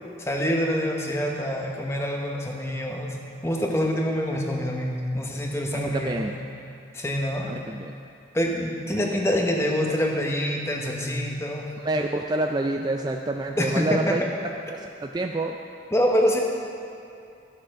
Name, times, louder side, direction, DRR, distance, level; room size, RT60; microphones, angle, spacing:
voice 1, 0.2-3.2 3.4-6.2 6.9-7.5 8.3-11.7 13.6-14.2 15.9-16.4, equal, 15° left, 0 dB, 1.0 m, -25 dB
voice 2, 5.7-6.4 7.4-7.9 11.8-14.2 14.7-15.6, right 2 dB, 20° right, 3 dB, 0.3 m, -27 dB
13.0 x 6.3 x 6.4 m, 2.6 s
head